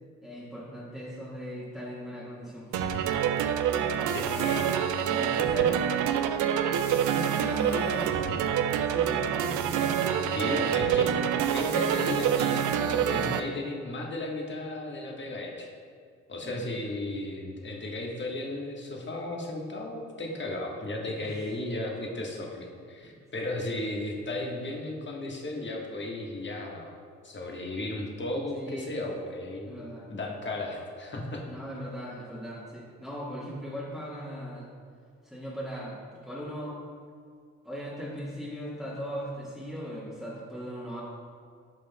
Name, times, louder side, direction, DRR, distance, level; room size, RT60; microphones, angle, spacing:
voice 1, 0.2-3.2 3.8-4.7 5.2-5.9 6.8-8.4 8.8-12.0 16.4-16.6 21.2-21.4 23.0-23.2 28.5-28.9 29.6-30.1 31.5-34.7 35.2-36.8 37.6-41.0, equal, ahead, -7 dB, 1.6 m, -39 dB
sound 1, 2.7-13.4, right 9 dB, 55° right, 0.5 m, -26 dB
voice 2, 4.1-4.7 10.3-11.1 11.5-15.7 16.3-26.9 27.2-29.7 30.1-31.4, left 2 dB, 30° left, 0 dB, 1.4 m, -35 dB
11.0 x 5.1 x 2.3 m, 2.2 s
figure-of-eight pair, 45°, 38 cm